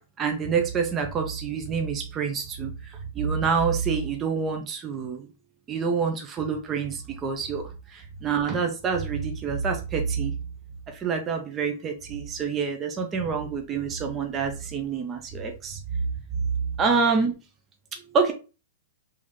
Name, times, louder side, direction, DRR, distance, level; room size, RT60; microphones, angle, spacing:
voice 1, 0.2-2.7 3.2-5.3 5.7-7.6 7.9-10.3 10.9-15.8 16.8-17.3 18.1-18.3, right 5 dB, 20° right, 0.5 m, -27 dB
3.7 x 2.6 x 3.1 m
hypercardioid pair, 145°, 0 cm